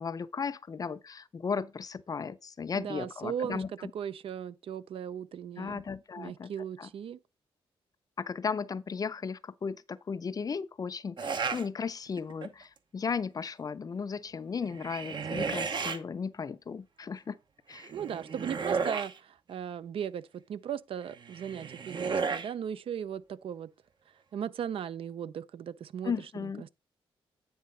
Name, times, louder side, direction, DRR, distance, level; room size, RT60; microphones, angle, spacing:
voice 1, 0.0-3.9 5.6-6.5 6.8-6.9 8.2-17.4 17.7-17.9 26.0-26.7, left 5 dB, 40° left, 0.5 m, -35 dB
voice 2, 2.7-3.6 3.9-5.8 6.2-7.2 17.9-23.7 24.3-26.1 26.6-26.7, right 8 dB, 70° right, 0.5 m, -37 dB
sound 1, 11.2-11.7 12.2-12.6 14.6-16.0 17.7-19.2 21.1-22.5, right 5 dB, 50° right, 0.9 m, -33 dB
9.4 x 3.5 x 5.4 m
cardioid pair, 85°, 10 cm